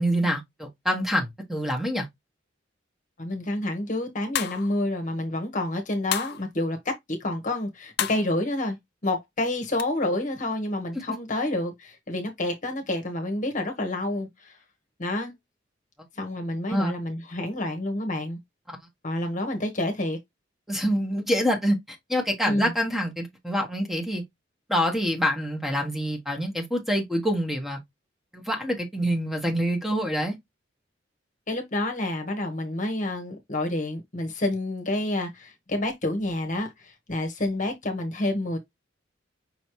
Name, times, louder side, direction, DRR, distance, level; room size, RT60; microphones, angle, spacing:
voice 1, 0.0-2.1 16.7-16.9 18.7-18.8 20.7-24.2 24.7-27.8 28.3-30.4, equal, ahead, 1.3 m, -26 dB
voice 2, 3.2-8.8 9.0-14.6 15.0-15.3 16.2-18.4 19.0-20.2 22.5-22.7 31.5-38.6, left 1 dB, 40° left, 1.2 m, -28 dB
sound 1, 4.3-4.8 6.1-6.5 8.0-8.3 9.8-9.9, left 10 dB, 60° left, 0.5 m, -29 dB
5.5 x 3.1 x 3.0 m
head